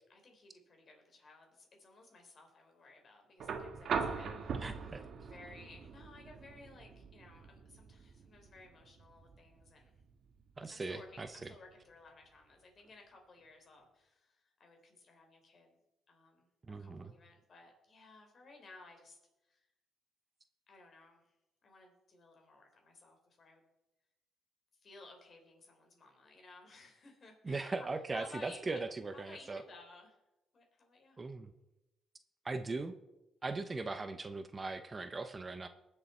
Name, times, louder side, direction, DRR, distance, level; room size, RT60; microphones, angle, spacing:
voice 1, 0.1-10.0 10.6-15.8 16.1-19.2 19.5-19.7 20.7-21.3 21.6-23.6 24.8-27.7 28.1-28.8 29.1-30.2 30.5-31.2, left 3 dB, 50° left, 3 dB, 3.7 m, -57 dB
sound 1, 3.4-11.4 12.9-13.0, right 5 dB, 60° right, 1.6 m, -42 dB
voice 2, 4.6-5.0 10.6-11.5 16.7-17.1 27.4-29.6 31.2-31.5 32.4-33.0 33.4-35.7, right 3 dB, 30° right, 9 dB, 0.8 m, -39 dB
20.0 x 6.8 x 4.4 m, 0.94 s
cardioid pair, 90°, 0 cm